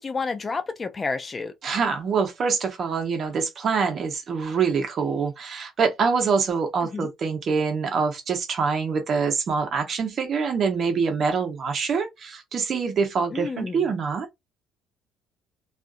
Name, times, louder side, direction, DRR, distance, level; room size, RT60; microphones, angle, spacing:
voice 1, 0.0-1.5 6.9-7.1 13.3-13.9, left 4 dB, 25° left, 0.4 m, -30 dB
voice 2, 1.6-14.3, right 5 dB, 45° right, 0.9 m, -25 dB
2.5 x 2.4 x 2.3 m
cardioid pair, 105°, 0 cm